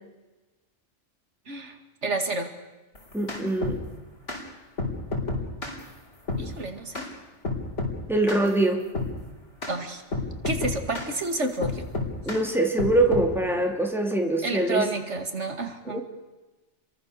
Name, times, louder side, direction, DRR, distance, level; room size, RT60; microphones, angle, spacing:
voice 1, 2.0-2.5 6.4-7.0 9.7-10.0 10.4-11.9 14.4-16.0, right 2 dB, 80° right, 6 dB, 2.5 m, -29 dB
sound 1, 3.0-3.8 4.3-4.4 4.8-5.8 6.3-6.5 6.9-7.1 7.4-8.0 8.3-8.5 8.9-9.1 9.6-9.8 10.1-11.1 11.6-12.4 12.8-13.3, left 3 dB, 85° left, 4.5 m, -30 dB
voice 2, 3.1-3.8 8.1-8.8 12.3-14.9 15.9-16.0, right 2 dB, ahead, 2 dB, 2.9 m, -23 dB
29.0 x 23.0 x 6.9 m, 1.1 s
omnidirectional pair, 1.2 m